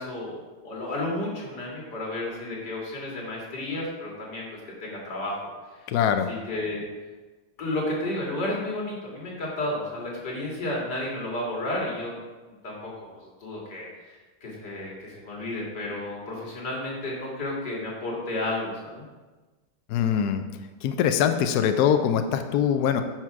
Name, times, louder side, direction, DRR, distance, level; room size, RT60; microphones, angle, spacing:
voice 1, 0.0-4.5 4.8-5.4 6.3-6.8 7.6-12.1 12.6-19.0, left 1 dB, 50° left, -3 dB, 2.8 m, -32 dB
voice 2, 5.9-6.3 19.9-20.4 20.8-23.0, left 8 dB, 75° left, 7 dB, 0.9 m, -23 dB
9.1 x 6.0 x 4.7 m, 1.2 s
omnidirectional pair, 2.3 m